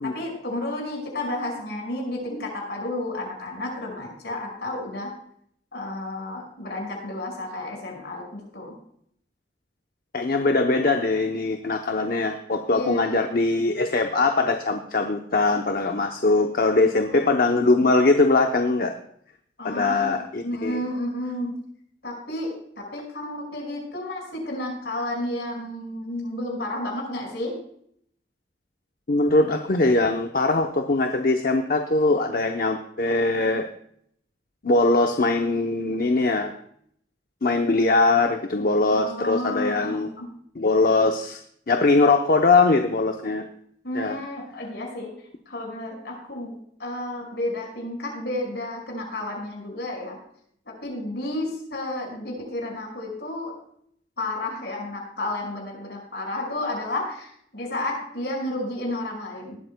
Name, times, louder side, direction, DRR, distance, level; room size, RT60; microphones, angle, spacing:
voice 1, 0.0-5.1 5.7-8.7 12.7-13.3 17.1-17.2 19.6-20.2 20.4-21.5 22.0-27.5 38.9-40.3 43.8-45.1 45.5-50.2 50.7-53.6 54.2-59.5, left 1 dB, 70° left, -1 dB, 5.4 m, -31 dB
voice 2, 10.1-18.9 19.6-20.8 29.1-33.7 34.6-36.5 37.4-40.1 40.6-41.4 41.7-43.4 43.9-44.2, left 3 dB, 55° left, 5 dB, 0.8 m, -21 dB
19.0 x 12.5 x 2.2 m, 0.67 s
head